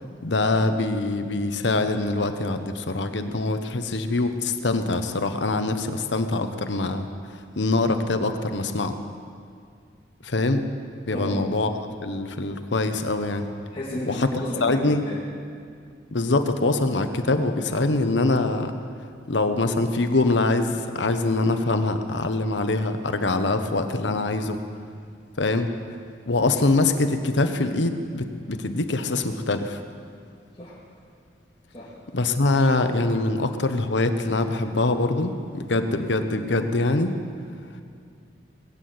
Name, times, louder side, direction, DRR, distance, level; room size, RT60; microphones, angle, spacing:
voice 1, 0.2-9.0 10.2-10.6 11.1-11.7 12.0-13.5 14.1-14.3 14.6-15.1 16.1-18.7 19.3-24.6 25.4-25.7 26.3-29.8 32.1-37.2, left 2 dB, 85° left, 8 dB, 1.0 m, -24 dB
voice 2, 11.1-11.4 13.7-15.2 30.6-30.8 31.7-31.9, left 1 dB, 30° left, -8 dB, 2.2 m, -33 dB
20.0 x 8.6 x 7.9 m, 2.2 s
head